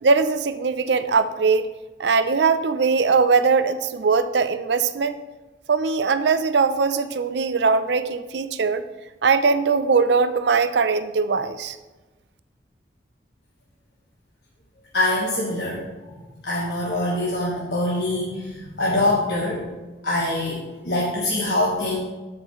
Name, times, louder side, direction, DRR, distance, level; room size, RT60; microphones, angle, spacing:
voice 1, 0.0-1.7 2.0-5.2 5.7-8.8 9.2-11.8, right 4 dB, 75° right, 11 dB, 0.5 m, -20 dB
voice 2, 14.9-19.6 20.0-22.0, left 1 dB, 70° left, -5 dB, 1.4 m, -24 dB
14.0 x 5.1 x 3.1 m, 1.2 s
head